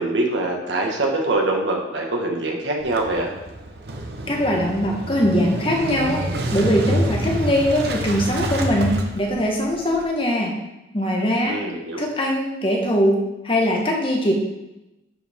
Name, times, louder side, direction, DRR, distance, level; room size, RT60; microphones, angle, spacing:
voice 1, 0.0-3.3 11.4-12.0, right 2 dB, 80° right, 0 dB, 1.5 m, -24 dB
Motorcycle / Engine starting, 2.8-10.0, right 1 dB, 60° right, 0.9 m, -27 dB
voice 2, 4.3-6.2 6.5-10.5 10.9-11.6 12.0-14.3, equal, 30° left, 0 dB, 1.2 m, -21 dB
11.0 x 4.8 x 3.6 m, 0.97 s
head